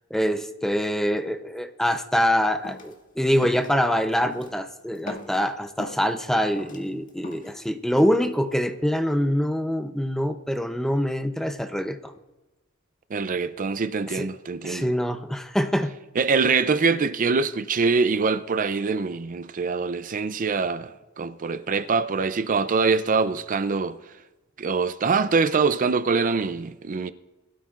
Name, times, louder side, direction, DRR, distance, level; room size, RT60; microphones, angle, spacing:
voice 1, 0.1-12.1 14.1-14.3 14.6-15.9, equal, ahead, 0.6 m, -25 dB
sound 1, 2.6-2.9 3.4-3.7 4.2-4.6 4.9-6.1 6.5-7.6 8.0-8.3, left 1 dB, 40° left, 1.8 m, -39 dB
voice 2, 13.1-14.9 16.2-24.0 24.6-27.1, right 4 dB, 40° right, 0.4 m, -24 dB
20.5 x 12.5 x 2.5 m
head